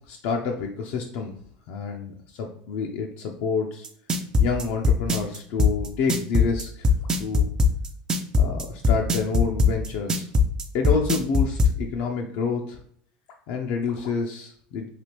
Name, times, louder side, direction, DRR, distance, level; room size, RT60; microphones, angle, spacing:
voice 1, 0.1-1.3 1.7-3.9 4.4-6.9 7.2-7.5 8.3-10.3 10.7-12.8 13.5-14.9, left 5 dB, 65° left, 1 dB, 0.5 m, -28 dB
sound 1, 3.8-11.7, left 3 dB, 20° right, 0.4 m, -20 dB
3.3 x 2.5 x 2.9 m, 0.63 s
supercardioid pair, 130°, 4 cm